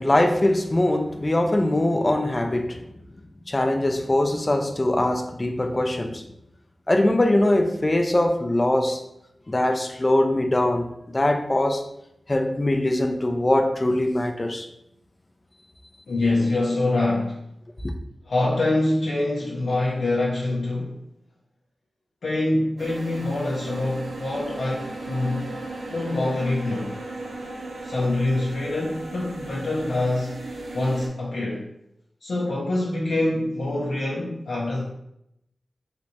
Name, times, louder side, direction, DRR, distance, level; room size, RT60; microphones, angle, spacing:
voice 1, 0.0-2.8 3.5-6.2 6.9-9.0 9.5-10.9 11.1-11.8 12.3-14.7, left 1 dB, 30° left, 0.4 m, -22 dB
voice 2, 16.1-17.4 18.3-21.0 22.2-25.5 25.9-26.9 27.8-30.4 30.7-31.6 32.2-34.8, left 2 dB, 85° left, 0.6 m, -25 dB
sound 1, 22.8-31.1, right 2 dB, 80° right, 0.6 m, -36 dB
3.3 x 3.0 x 2.6 m
cardioid pair, 50°, 0 cm